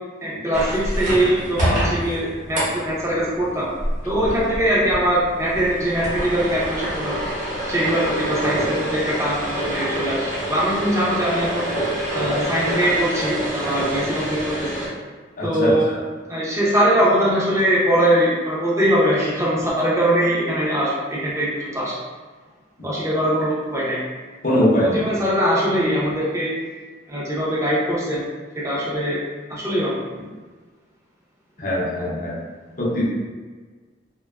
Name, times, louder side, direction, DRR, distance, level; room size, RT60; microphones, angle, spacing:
voice 1, 0.2-3.6 4.0-7.1 7.7-11.7 12.1-14.8 15.4-15.8 16.3-21.9 22.8-24.0 24.8-26.5 27.1-28.3 28.6-29.2 29.5-30.0, right 1 dB, 15° right, -7 dB, 0.5 m, -21 dB
sound 1, 0.5-14.9, equal, 40° right, 0.8 m, -27 dB
voice 2, 15.4-16.0 24.4-25.0 31.6-32.4 32.8-33.1, equal, 45° left, -5 dB, 0.6 m, -21 dB
2.5 x 2.2 x 2.3 m, 1.4 s
head